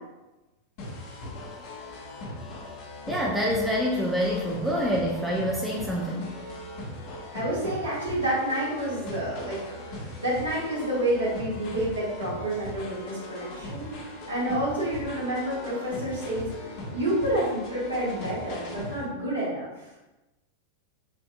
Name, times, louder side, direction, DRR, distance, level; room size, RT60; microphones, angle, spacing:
sound 1, 0.8-19.1, left 1 dB, 45° left, 0.9 m, -39 dB
voice 1, 3.1-6.4, equal, 5° right, -4 dB, 0.6 m, -26 dB
voice 2, 7.3-9.6 9.9-13.9 14.3-16.5 16.9-19.9, right 1 dB, 75° right, -6 dB, 1.5 m, -29 dB
6.0 x 2.6 x 2.2 m, 1.1 s
figure-of-eight pair, 90°, 0 cm